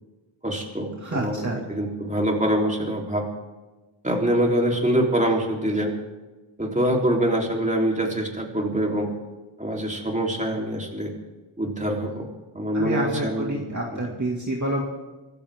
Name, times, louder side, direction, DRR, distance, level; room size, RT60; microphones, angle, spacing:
voice 1, 0.4-1.4 1.7-3.3 4.0-5.9 6.6-9.1 9.6-11.1 11.6-12.3 12.6-13.6 13.9-14.1, right 1 dB, 15° right, 0 dB, 3.8 m, -24 dB
voice 2, 1.0-1.6 12.7-14.8, right 1 dB, 35° right, -2 dB, 2.4 m, -28 dB
25.5 x 14.0 x 3.7 m, 1.2 s
wide cardioid pair, 80°, 49 cm